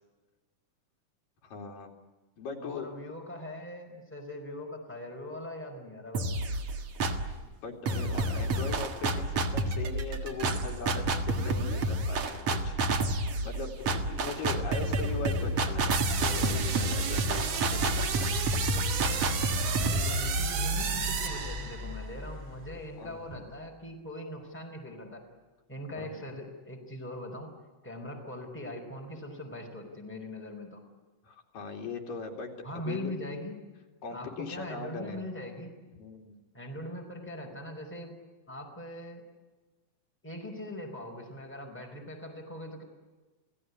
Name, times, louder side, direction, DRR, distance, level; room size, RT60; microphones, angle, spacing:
voice 1, 1.4-1.9 2.4-2.9 7.4-12.8 13.4-18.3 23.0-23.2 26.0-26.1 31.2-32.5 32.9-33.2 34.0-35.3 36.0-36.4, left 4 dB, 80° left, 2 dB, 4.3 m, -39 dB
voice 2, 2.6-6.3 19.5-25.2 25.7-27.5 27.8-30.8 32.6-33.6 34.1-35.7 36.5-38.1 38.5-39.2 40.2-42.8, left 1 dB, 5° left, 1 dB, 4.6 m, -41 dB
sound 1, 6.1-7.4 7.9-21.6, right 2 dB, 50° right, 2.4 m, -30 dB
sound 2, 13.6-23.8, left 2 dB, 20° right, 2.2 m, -41 dB
sound 3, 15.9-22.1, right 7 dB, 70° right, 3.4 m, -33 dB
29.0 x 16.5 x 9.6 m, 1.3 s
omnidirectional pair, 3.9 m